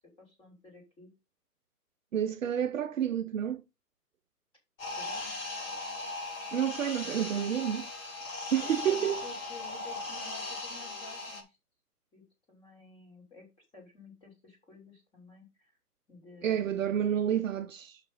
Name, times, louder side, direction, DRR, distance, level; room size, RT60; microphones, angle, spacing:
voice 1, 0.2-1.1 5.0-5.3 7.0-7.5 8.6-11.6 12.1-13.5 13.7-15.8 16.1-17.2, left 3 dB, 10° left, 2.9 m, -52 dB
voice 2, 2.1-3.6 6.5-7.8 8.5-9.2 16.4-18.0, right 9 dB, 55° right, 0.7 m, -29 dB
sound 1, 4.8-11.4, left 2 dB, 55° left, 3.2 m, -38 dB
5.9 x 5.5 x 5.4 m
hypercardioid pair, 145°, 47 cm